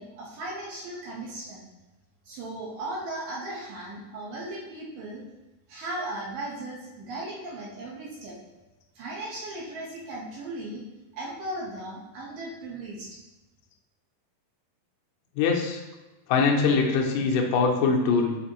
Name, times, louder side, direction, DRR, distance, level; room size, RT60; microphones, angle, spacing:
voice 1, 0.0-1.7 2.3-5.2 5.7-8.4 9.0-10.8 11.1-13.1, right 1 dB, 70° right, -5 dB, 2.5 m, -37 dB
voice 2, 15.4-15.8 16.3-18.4, left 4 dB, 75° left, 0 dB, 2.1 m, -22 dB
7.3 x 4.3 x 3.0 m, 1.1 s
omnidirectional pair, 4.5 m